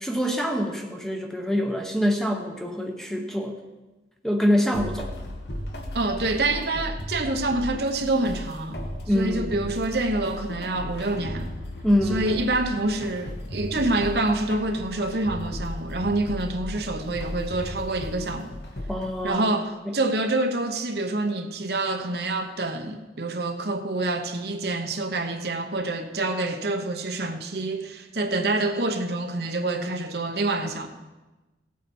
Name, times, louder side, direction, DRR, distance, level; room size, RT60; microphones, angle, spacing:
voice 1, 0.0-3.5 4.2-5.1 9.1-9.6 11.8-12.3 18.9-19.9, equal, ahead, 0.9 m, -25 dB
sound 1, 4.7-19.2, left 1 dB, 65° left, 1.4 m, -36 dB
voice 2, 5.9-8.8 9.1-11.5 12.1-18.6 19.2-30.9, right 2 dB, 60° right, 1.0 m, -27 dB
17.0 x 8.5 x 4.4 m
head